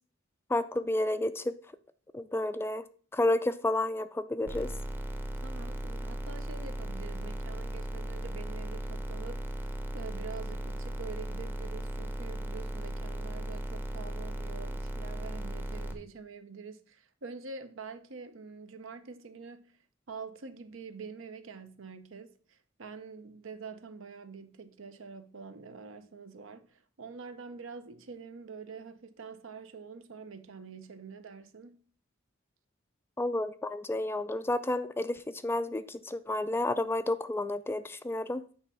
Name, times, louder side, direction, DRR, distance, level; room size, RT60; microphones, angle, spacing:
voice 1, 0.5-1.5 2.1-2.8 3.1-4.7 33.2-38.4, left 1 dB, 10° left, 0.3 m, -31 dB
sound 1, 4.5-15.9, right 1 dB, 10° right, 0.7 m, -37 dB
voice 2, 5.4-19.6 20.1-31.8, right 5 dB, 70° right, 0.7 m, -46 dB
8.9 x 3.4 x 5.5 m
head